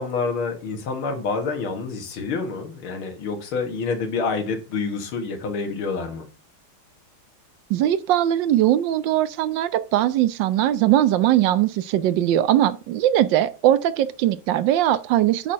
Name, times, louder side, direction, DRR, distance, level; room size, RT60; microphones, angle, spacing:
voice 1, 0.0-6.3, left 4 dB, 85° left, 2.3 m, -27 dB
voice 2, 7.7-15.5, right 12 dB, 70° right, 1.3 m, -20 dB
7.3 x 4.3 x 6.2 m
omnidirectional pair, 2.2 m